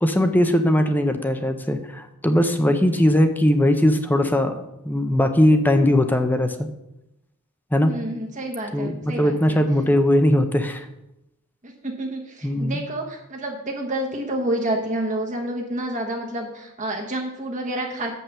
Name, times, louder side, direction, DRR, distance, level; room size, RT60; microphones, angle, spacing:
voice 1, 0.0-4.5 4.8-6.7 7.7-7.9 8.7-10.9 12.4-12.8, left 1 dB, 10° left, 7 dB, 0.6 m, -19 dB
voice 2, 7.8-9.6 11.6-18.2, right 1 dB, 35° right, 1 dB, 1.0 m, -29 dB
7.4 x 5.5 x 6.9 m, 0.89 s
head